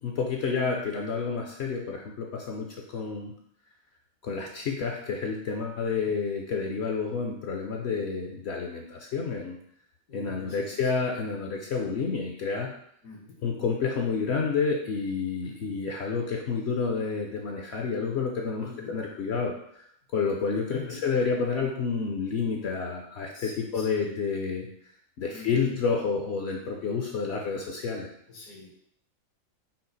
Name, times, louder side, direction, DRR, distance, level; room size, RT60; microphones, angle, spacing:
voice 1, 0.0-3.3 4.2-9.6 10.1-12.7 13.4-19.8 20.1-24.7 25.2-28.1, left 5 dB, 60° left, 1 dB, 0.7 m, -29 dB
voice 2, 10.1-11.0 13.0-13.4 15.4-15.7 18.6-18.9 20.7-21.0 23.3-24.1 25.2-25.8 26.6-26.9 28.3-28.9, left 3 dB, 85° left, -1 dB, 1.6 m, -46 dB
5.6 x 2.4 x 4.0 m, 0.68 s
omnidirectional pair, 1.4 m